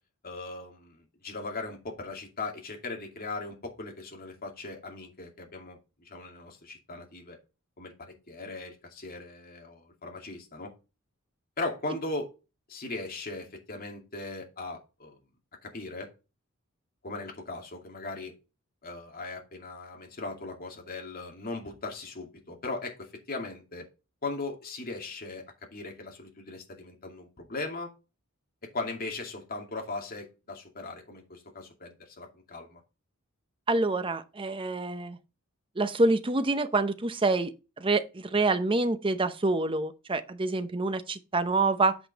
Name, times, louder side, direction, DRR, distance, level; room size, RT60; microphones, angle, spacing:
voice 1, 0.2-7.4 7.8-10.7 11.6-12.3 12.7-15.2 15.6-16.1 17.0-18.3 18.8-23.8 24.2-25.4 25.7-27.9 28.7-32.8, left 3 dB, 45° left, 2.4 m, -38 dB
voice 2, 33.7-35.2 35.8-37.5 37.8-42.0, right 2 dB, 25° right, 0.7 m, -26 dB
8.1 x 5.3 x 4.0 m
head